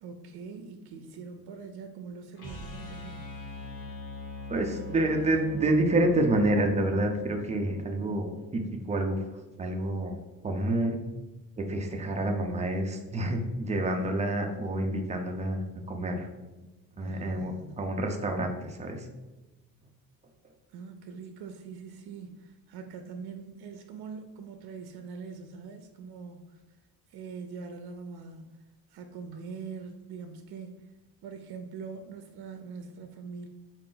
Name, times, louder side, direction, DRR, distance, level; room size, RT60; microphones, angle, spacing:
voice 1, 0.0-3.3 17.0-17.9 20.7-26.8 27.1-28.6 28.9-30.9 31.2-33.5, right 5 dB, 85° right, 6 dB, 0.5 m, -43 dB
sound 1, 2.4-8.5, left 2 dB, 85° left, 1.2 m, -42 dB
voice 2, 4.5-9.2 9.6-11.0 11.6-16.3 17.0-19.1, right 1 dB, 20° right, 3 dB, 0.4 m, -28 dB
4.8 x 2.5 x 3.7 m, 1.1 s
cardioid pair, 170°, 37 cm